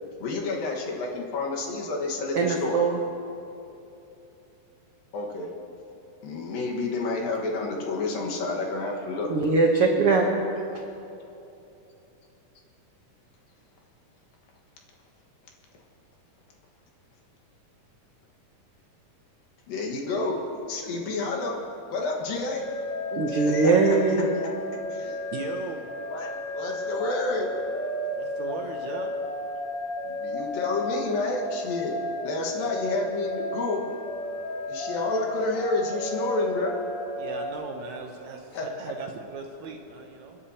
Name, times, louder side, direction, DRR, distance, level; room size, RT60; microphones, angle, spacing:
voice 1, 0.2-2.8 5.1-5.5 6.2-9.3 19.7-20.4 20.7-21.6 21.9-22.6 23.3-23.8 24.9-25.2 26.1-26.3 26.5-27.5 30.0-31.9 32.2-33.8 34.7-36.8 38.0-38.1 38.5-38.7, left 3 dB, 80° left, -1 dB, 3.3 m, -29 dB
voice 2, 2.3-3.0 9.3-10.3 23.1-24.3, right 4 dB, 90° right, 0 dB, 1.2 m, -21 dB
sound 1, 22.6-37.5, left 2 dB, 55° left, 3.0 m, -33 dB
voice 3, 25.3-25.9 28.2-29.1 37.2-40.4, right 4 dB, 70° right, 2 dB, 1.8 m, -37 dB
30.0 x 10.0 x 2.9 m, 2.8 s
omnidirectional pair, 4.0 m